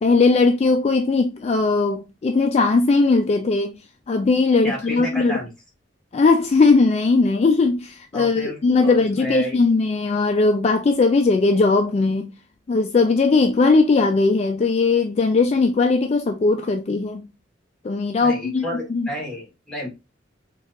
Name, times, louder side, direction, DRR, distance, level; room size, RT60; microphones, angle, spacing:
voice 1, 0.0-3.7 4.1-5.4 6.1-12.3 12.7-17.3 17.8-18.6 18.9-19.1, left 3 dB, 35° left, 0.3 m, -19 dB
voice 2, 4.6-5.5 8.1-9.6 18.2-19.9, equal, 5° left, 1.2 m, -31 dB
4.3 x 2.4 x 2.4 m
head